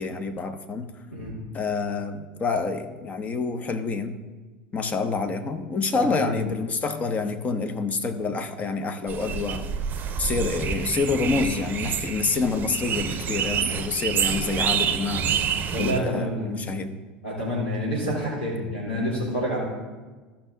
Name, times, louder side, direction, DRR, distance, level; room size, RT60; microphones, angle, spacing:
voice 1, 0.0-0.9 1.5-4.2 4.7-9.7 10.2-15.4 15.8-17.0, left 4 dB, 25° left, 8 dB, 0.9 m, -27 dB
voice 2, 5.9-6.3 15.7-16.5 17.2-19.6, equal, 80° left, -6 dB, 3.2 m, -28 dB
sound 1, 9.1-16.0, right 7 dB, 35° right, 0.7 m, -27 dB
13.5 x 5.8 x 3.8 m, 1.3 s
figure-of-eight pair, 75°, 5 cm